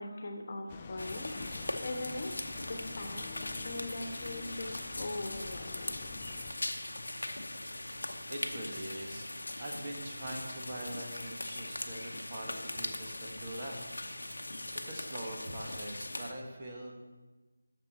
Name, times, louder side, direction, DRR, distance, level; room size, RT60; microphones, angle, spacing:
voice 1, 0.0-2.3 2.6-4.7 5.0-6.2, left 2 dB, 45° left, 3 dB, 1.2 m, -41 dB
sound 1, 0.7-6.5, left 5 dB, 25° left, 0.4 m, -48 dB
sound 2, 1.0-16.3, left 1 dB, 75° left, 0.9 m, -40 dB
voice 2, 8.3-9.3 9.6-13.9 14.2-14.5 14.8-16.9, right 1 dB, 35° right, 0 dB, 1.6 m, -43 dB
10.5 x 6.7 x 4.3 m, 1.2 s
figure-of-eight pair, 165°, 0 cm